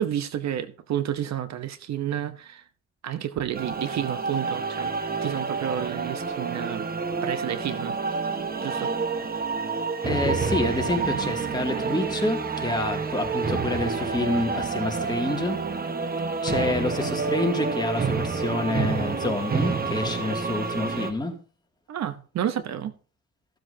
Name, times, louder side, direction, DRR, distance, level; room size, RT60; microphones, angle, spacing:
voice 1, 0.0-2.6 3.0-4.9 5.2-6.9 7.2-8.0 8.6-8.9 21.9-22.9, right 10 dB, 65° right, 0.9 m, -30 dB
sound 1, 3.5-21.1, right 4 dB, 30° right, 1.3 m, -28 dB
voice 2, 10.0-15.6 16.4-21.3, left 2 dB, 15° left, 2.4 m, -28 dB
15.0 x 7.6 x 2.8 m
cardioid pair, 90°, 30 cm